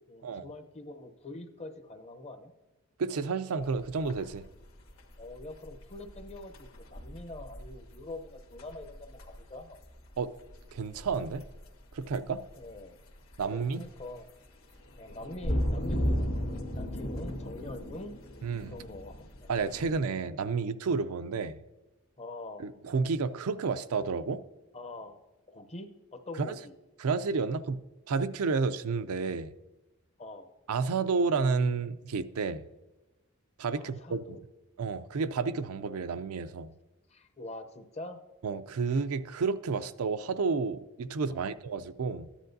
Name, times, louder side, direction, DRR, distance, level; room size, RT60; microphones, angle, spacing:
voice 1, 0.0-2.5 5.2-9.8 12.6-13.0 13.4-14.3 15.0-18.2 18.7-19.5 22.2-22.7 24.7-25.2 25.5-26.7 30.2-30.5 33.8-34.4 37.1-38.2 41.3-41.5, left 2 dB, 30° left, 0.7 m, -44 dB
voice 2, 3.0-4.4 10.2-10.3 10.7-11.5 11.9-12.4 13.4-13.8 18.4-18.7 19.5-21.6 22.6-24.4 26.4-26.6 27.0-29.5 30.7-32.7 33.6-34.2 34.8-36.7 38.4-42.3, right 4 dB, 75° right, 0.5 m, -31 dB
sound 1, 3.6-20.0, equal, 65° left, 1.5 m, -37 dB
13.5 x 10.0 x 2.6 m
head